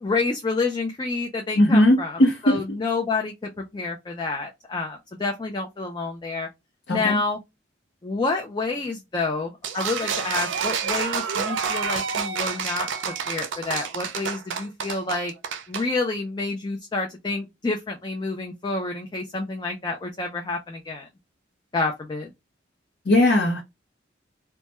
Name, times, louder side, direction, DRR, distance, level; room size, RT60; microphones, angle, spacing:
voice 1, 0.0-2.2 2.4-6.5 6.9-7.4 8.0-15.3 15.7-21.1 21.7-22.3, left 3 dB, 25° left, 0.3 m, -28 dB
voice 2, 1.5-2.6 6.9-7.2 23.0-23.6, left 1 dB, 65° left, 0.6 m, -18 dB
sound 1, 9.6-15.9, right 6 dB, 80° right, 0.4 m, -28 dB
2.2 x 2.1 x 2.8 m
head